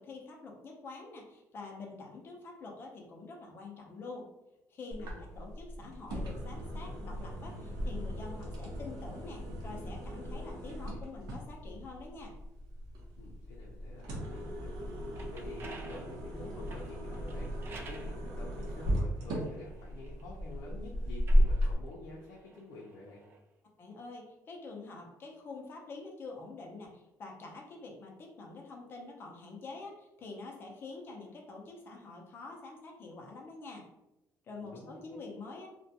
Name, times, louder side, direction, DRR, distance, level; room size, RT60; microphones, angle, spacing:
voice 1, 0.0-4.3 4.7-12.3 23.8-33.9 34.4-35.7, left 3 dB, 35° left, 0 dB, 0.5 m, -46 dB
sound 1, 4.9-21.7, equal, 90° right, 0.7 m, -35 dB
voice 2, 5.0-5.5 13.2-23.2 34.6-35.2, left 2 dB, 90° left, -3 dB, 0.5 m, -49 dB
sound 2, 14.9-18.1 18.9-20.6 21.1-23.4, right 3 dB, 35° right, 0.3 m, -52 dB
2.3 x 2.1 x 2.7 m, 0.93 s
cardioid pair, 165°, 6 cm